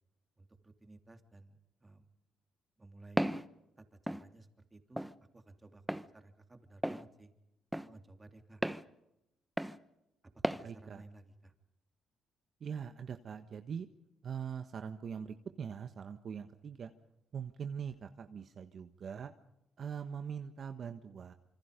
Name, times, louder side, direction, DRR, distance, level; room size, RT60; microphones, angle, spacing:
voice 1, 0.4-2.1 2.8-3.2 3.8-5.1 5.3-7.3 7.8-8.6 10.5-11.5, right 2 dB, 20° right, 6 dB, 3.1 m, -56 dB
Walk footsteps, 3.2-3.4 4.1-4.2 5.0-5.1 5.9-6.1 6.8-7.0 7.7-7.9 8.6-8.8 9.6-9.8 10.4-10.6, right 1 dB, 5° right, 1.0 m, -33 dB
voice 2, 10.6-11.0 12.6-13.9 14.2-16.9 17.3-19.3 19.8-21.3, right 7 dB, 55° right, 7 dB, 1.4 m, -42 dB
27.0 x 25.0 x 5.2 m, 0.87 s
cardioid pair, 90°, 0 cm